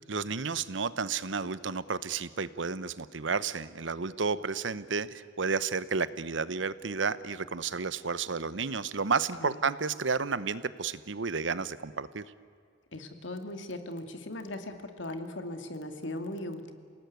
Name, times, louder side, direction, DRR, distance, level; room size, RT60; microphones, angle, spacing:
voice 1, 0.1-12.2, right 5 dB, 80° right, 16 dB, 0.9 m, -31 dB
voice 2, 12.9-16.7, left 1 dB, 80° left, 7 dB, 2.5 m, -38 dB
28.5 x 18.5 x 9.4 m, 2.3 s
head